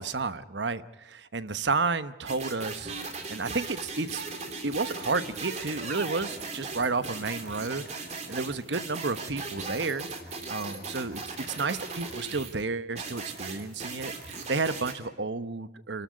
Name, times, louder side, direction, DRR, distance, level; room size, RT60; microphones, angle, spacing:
voice 1, 0.0-2.9 3.3-4.2 4.6-10.1 10.5-16.0, right 4 dB, 70° right, 13 dB, 1.0 m, -31 dB
sound 1, 2.3-12.5 13.0-14.9, right 4 dB, 35° right, 2.9 m, -38 dB
sound 2, 4.0-12.7, left 3 dB, 55° left, 3.1 m, -52 dB
28.0 x 13.0 x 9.5 m, 1.0 s
head